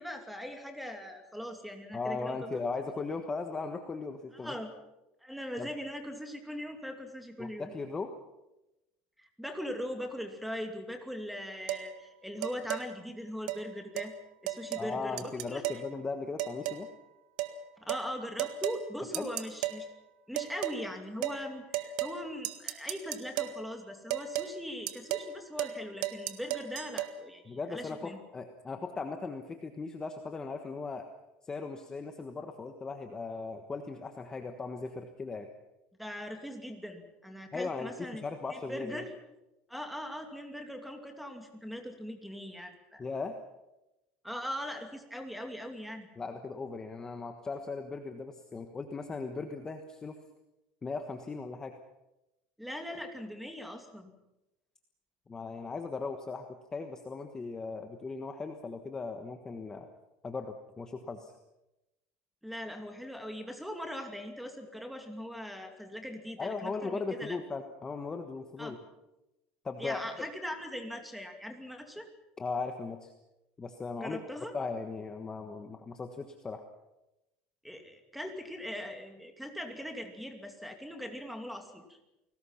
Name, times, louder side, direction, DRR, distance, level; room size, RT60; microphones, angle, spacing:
voice 1, 0.0-2.7 4.3-4.7 5.2-7.7 9.2-14.1 14.4-15.8 17.8-19.9 20.3-28.2 36.0-38.2 38.5-39.1 39.7-43.0 44.2-46.1 52.6-54.1 62.4-67.4 68.6-68.7 69.8-72.1 74.0-74.5 77.6-82.0, equal, ahead, 5 dB, 2.6 m, -40 dB
voice 2, 1.9-4.5 5.6-5.7 7.4-8.1 14.8-16.9 19.2-19.3 27.5-31.0 31.4-35.5 37.5-39.0 43.0-43.4 46.2-50.1 50.8-51.7 55.3-59.9 60.2-61.3 66.4-68.8 69.6-70.0 72.4-73.1 73.6-74.2 74.5-76.6, left 4 dB, 15° left, 6 dB, 1.3 m, -38 dB
sound 1, 11.7-11.9 12.4-12.9 13.5-13.6 14.0-14.1 14.5-14.9 15.2-15.9 16.4-16.9 17.4-17.6 17.9-18.1 18.4-18.8 19.1-19.8 20.4-20.8 21.2-21.4 21.7-22.2 22.4-23.6 24.1-24.5 24.9-25.3 25.6-25.8 26.0-27.1, right 15 dB, 85° right, 1.8 m, -34 dB
29.5 x 19.5 x 5.9 m, 0.96 s
cardioid pair, 160°, 4 cm